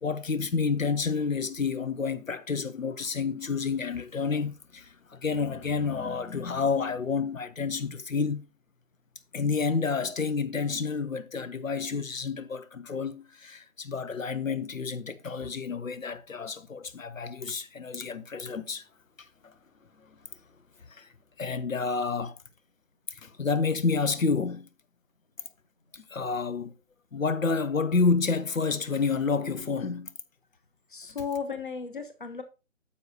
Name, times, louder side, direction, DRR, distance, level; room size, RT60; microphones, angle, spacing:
voice 1, 0.0-8.5 9.3-18.9 19.4-19.5 20.1-20.2 20.9-21.1 21.4-22.4 23.1-24.7 25.9-26.7 27.1-30.1, left 5 dB, 80° left, 0.9 m, -29 dB
voice 2, 30.9-32.4, left 6 dB, 40° left, 0.8 m, -35 dB
9.5 x 7.0 x 2.7 m
figure-of-eight pair, 175°, 39 cm